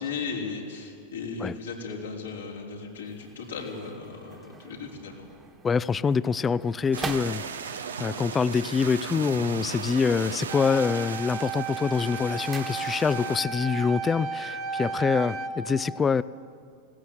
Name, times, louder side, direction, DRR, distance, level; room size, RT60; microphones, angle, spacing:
voice 1, 0.0-5.3, left 4 dB, 90° left, -2 dB, 4.0 m, -36 dB
sound 1, 2.9-7.9 9.0-10.1 10.4-10.9 11.3-13.3 13.6-13.7, right 4 dB, 20° right, 1.5 m, -43 dB
voice 2, 5.6-7.4 8.0-16.2, left 5 dB, 20° left, 18 dB, 0.5 m, -25 dB
sound 2, 6.9-13.4, right 6 dB, 90° right, 1.0 m, -37 dB
sound 3, 10.5-15.5, right 4 dB, 45° right, 2.0 m, -34 dB
20.0 x 17.0 x 7.9 m, 2.3 s
hypercardioid pair, 105°, 0 cm